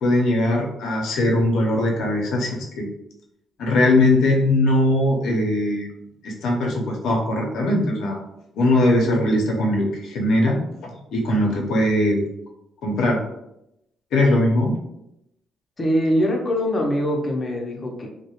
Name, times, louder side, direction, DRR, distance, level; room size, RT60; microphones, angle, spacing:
voice 1, 0.0-2.9 3.6-5.9 6.2-8.2 8.6-12.2 12.8-13.2 14.1-14.8, left 1 dB, 80° left, -1 dB, 0.6 m, -20 dB
voice 2, 15.8-18.1, equal, 30° left, 0 dB, 0.5 m, -22 dB
2.2 x 2.1 x 2.8 m, 0.83 s
cardioid pair, 90°, 0 cm